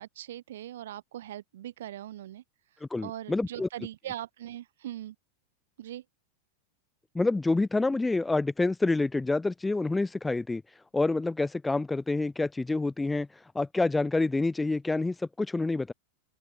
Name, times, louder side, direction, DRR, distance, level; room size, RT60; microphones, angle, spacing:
voice 1, 0.0-2.4 3.0-5.1 5.8-6.0, right 12 dB, 60° right, 1.4 m, -40 dB
voice 2, 2.9-3.7 7.1-10.6 10.9-13.3 13.5-15.9, left 3 dB, 10° left, 1.4 m, -27 dB
open air
figure-of-eight pair, 90°, 0 cm